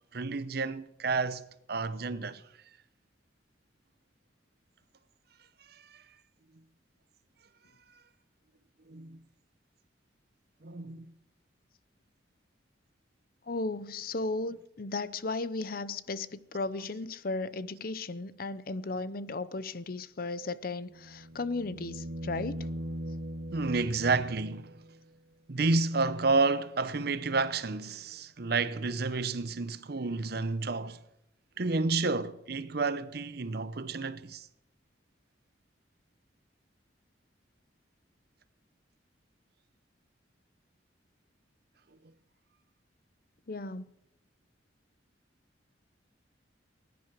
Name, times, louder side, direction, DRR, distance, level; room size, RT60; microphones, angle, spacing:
voice 1, 0.1-1.4 1.7-2.4 5.7-6.0 8.9-9.2 10.6-11.1 16.8-16.9 23.5-24.7 25.5-31.0 31.6-34.5, right 3 dB, 55° right, 0.8 m, -30 dB
voice 2, 13.5-22.7 43.5-43.9, left 3 dB, 50° left, 0.7 m, -35 dB
sound 1, 20.9-25.0 27.4-27.5, right 1 dB, 85° right, 1.0 m, -40 dB
18.5 x 10.5 x 7.5 m
head